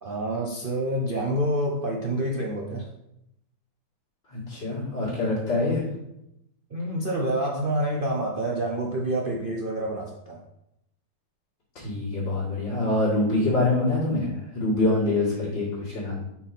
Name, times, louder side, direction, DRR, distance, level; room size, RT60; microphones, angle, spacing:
voice 1, 0.0-2.9 6.7-10.4, right 1 dB, 70° right, -1 dB, 0.5 m, -27 dB
voice 2, 4.3-5.8 11.7-16.2, left 2 dB, 65° left, -10 dB, 3.0 m, -25 dB
5.9 x 4.2 x 5.9 m, 0.82 s
omnidirectional pair, 2.0 m